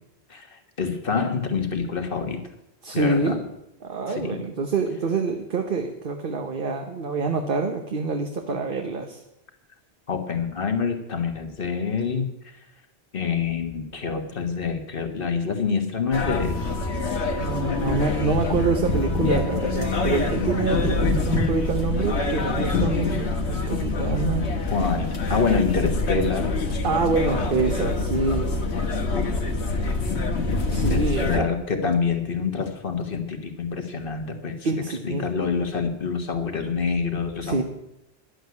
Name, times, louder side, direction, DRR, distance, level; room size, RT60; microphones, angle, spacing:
voice 1, 0.3-2.4 2.9-3.4 4.1-4.4 10.1-12.3 13.1-16.6 24.7-26.5 29.1-29.3 30.7-34.7 35.0-37.6, left 5 dB, 55° left, 5 dB, 1.7 m, -26 dB
voice 2, 2.8-3.4 3.8-9.2 17.4-24.5 26.8-28.5 30.7-31.5 34.6-35.2 37.4-37.6, right 4 dB, 55° right, 4 dB, 1.2 m, -26 dB
sound 1, 16.1-31.4, left 3 dB, 90° left, 1.7 m, -25 dB
11.0 x 8.0 x 9.4 m, 0.87 s
omnidirectional pair, 1.1 m